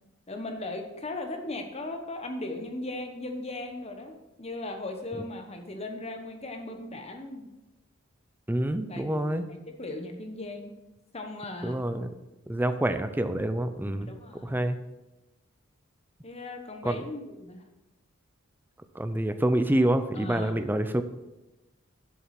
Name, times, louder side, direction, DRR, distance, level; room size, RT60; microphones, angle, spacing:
voice 1, 0.3-7.5 8.9-10.7 11.1-11.8 12.7-12.8 13.8-14.7 16.2-17.6 20.1-20.8, left 2 dB, 30° left, 5 dB, 1.1 m, -38 dB
voice 2, 8.5-9.4 11.6-12.1 12.5-14.1 14.4-14.8 16.8-17.0 19.0-21.0, right 1 dB, 10° right, 9 dB, 0.5 m, -27 dB
7.6 x 7.0 x 5.8 m, 1.0 s
head